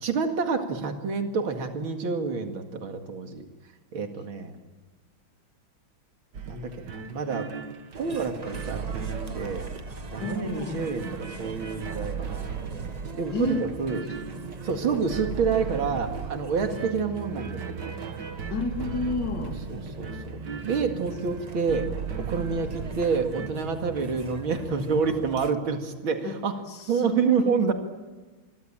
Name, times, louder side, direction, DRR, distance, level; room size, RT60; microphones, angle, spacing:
voice 1, 0.0-3.5 3.9-4.5 6.5-7.5 8.0-9.7 10.1-12.5 13.1-14.1 14.6-18.0 19.4-21.9 22.2-26.6 26.9-27.7, right 5 dB, 85° right, 5 dB, 3.0 m, -28 dB
sound 1, 6.3-23.5, right 6 dB, 60° right, 2.2 m, -37 dB
sound 2, 7.9-25.5, right 3 dB, 25° right, 1.1 m, -41 dB
voice 2, 10.2-10.8 13.3-13.6 16.6-16.8 18.5-19.6 26.2-26.3 26.7-27.7, left 3 dB, 60° left, 4 dB, 3.1 m, -30 dB
27.0 x 24.0 x 8.8 m, 1.3 s
omnidirectional pair, 2.2 m